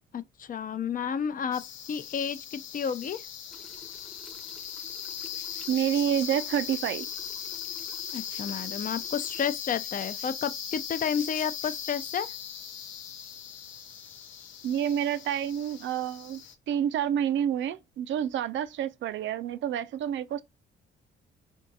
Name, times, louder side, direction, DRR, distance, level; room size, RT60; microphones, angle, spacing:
voice 1, 0.1-3.2 8.1-12.3, left 7 dB, 45° left, 0.5 m, -31 dB
sound 1, 1.5-16.5, left 8 dB, 80° left, 0.7 m, -39 dB
sound 2, 3.5-9.5, left 1 dB, ahead, 0.7 m, -54 dB
voice 2, 5.7-7.1 14.6-16.4 16.7-20.4, right 9 dB, 70° right, 0.5 m, -28 dB
4.6 x 3.6 x 2.6 m
cardioid pair, 90°, 20 cm